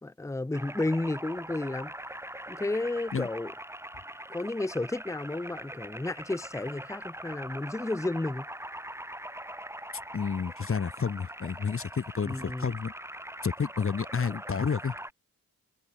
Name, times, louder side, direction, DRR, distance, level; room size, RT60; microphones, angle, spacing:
voice 1, 0.0-1.9 2.5-3.5 4.3-8.4 12.3-12.7, left 2 dB, 10° left, 0.8 m, -32 dB
sound 1, 0.5-15.1, right 1 dB, 5° right, 2.8 m, -42 dB
voice 2, 10.1-12.9 13.4-15.0, left 6 dB, 35° left, 0.8 m, -30 dB
cardioid pair, 75°, 37 cm